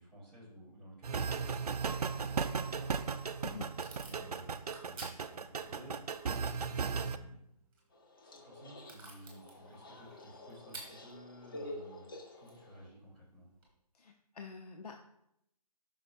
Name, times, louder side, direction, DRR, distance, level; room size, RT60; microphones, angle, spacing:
voice 1, 0.0-1.7 2.0-3.6 3.9-6.2 6.8-7.4 8.2-12.1 12.4-13.5, equal, ahead, -12 dB, 1.9 m, -54 dB
sound 1, 1.0-7.2, right 5 dB, 70° right, 0.6 m, -36 dB
Packing tape duct tape / Tearing, 2.9-13.7, right 2 dB, 35° right, 3.1 m, -56 dB
sound 2, 7.9-12.9, left 1 dB, 35° left, 0.8 m, -49 dB
voice 2, 13.9-15.0, left 6 dB, 70° left, 3 dB, 0.8 m, -47 dB
9.9 x 6.1 x 2.6 m, 0.77 s
hypercardioid pair, 170°, 21 cm